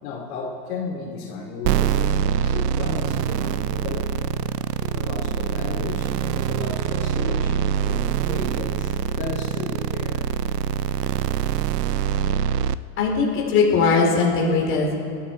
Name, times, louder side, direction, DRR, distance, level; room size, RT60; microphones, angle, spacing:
voice 1, 0.0-4.2 4.8-7.6 7.8-10.2, left 4 dB, 55° left, -2 dB, 3.0 m, -34 dB
sound 1, 1.6-12.7, right 9 dB, 70° right, 0.7 m, -24 dB
voice 2, 13.0-14.9, left 4 dB, 25° left, -1 dB, 3.1 m, -19 dB
22.0 x 12.5 x 4.2 m, 2.7 s
hypercardioid pair, 145°, 49 cm